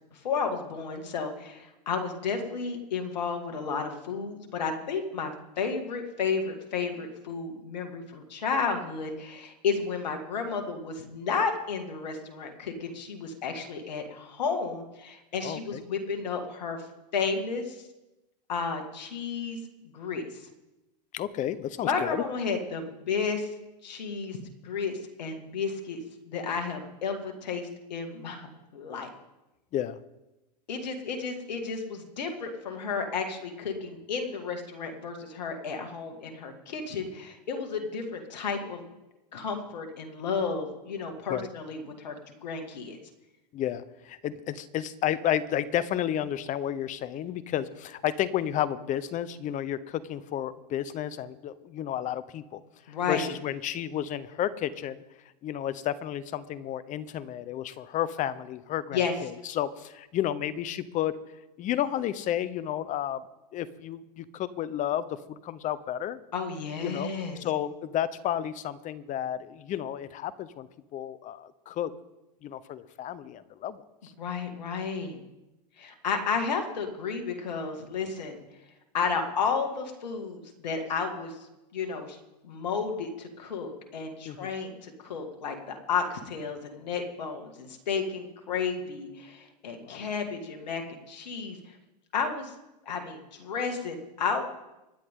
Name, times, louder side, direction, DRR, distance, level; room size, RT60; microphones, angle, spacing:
voice 1, 0.1-16.8 17.1-17.8 18.5-20.5 21.8-23.5 23.8-24.4 24.6-26.0 26.2-29.1 30.7-38.8 39.3-43.0 52.9-53.3 58.9-59.1 66.3-67.4 74.2-75.2 75.8-78.4 78.9-81.4 81.7-82.2 82.4-91.7 92.1-92.5 92.9-94.5, left 5 dB, 85° left, 4 dB, 2.2 m, -32 dB
voice 2, 15.4-15.8 21.1-22.2 29.7-30.0 41.3-41.5 43.5-52.6 52.9-55.0 55.4-61.2 61.6-63.2 63.5-66.2 66.8-67.1 67.4-71.9 72.4-73.8 84.2-84.5 89.8-90.0, left 11 dB, 35° left, 16 dB, 0.9 m, -32 dB
25.5 x 9.9 x 3.8 m, 0.99 s
hypercardioid pair, 110°, 21 cm